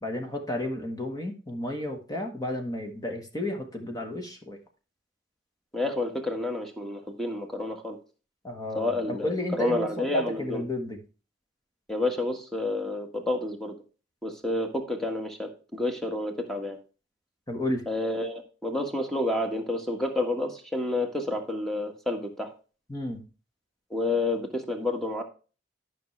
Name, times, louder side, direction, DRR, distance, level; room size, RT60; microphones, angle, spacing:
voice 1, 0.0-4.6 8.4-11.0 17.5-17.8 22.9-23.2, left 1 dB, 20° left, 3 dB, 1.4 m, -32 dB
voice 2, 5.7-8.0 8.7-10.6 11.9-13.7 14.2-16.8 17.9-22.5 23.9-25.2, left 2 dB, ahead, 3 dB, 1.6 m, -29 dB
12.5 x 6.1 x 3.3 m, 0.35 s
head